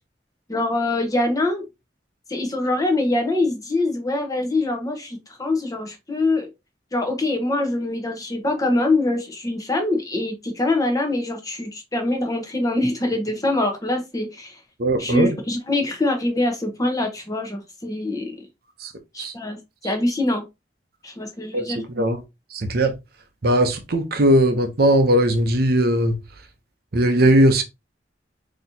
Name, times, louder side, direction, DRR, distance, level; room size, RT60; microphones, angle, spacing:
voice 1, 0.5-1.6 2.3-6.5 6.9-14.6 15.0-18.3 19.1-19.6 19.8-20.4 21.0-21.8, left 2 dB, 20° left, 0.9 m, -24 dB
voice 2, 14.8-15.4 18.8-18.9 19.2-19.3 21.5-22.2 22.5-22.9 23.4-26.2 26.9-27.6, right 1 dB, 55° right, 0.7 m, -19 dB
4.1 x 2.9 x 2.8 m
head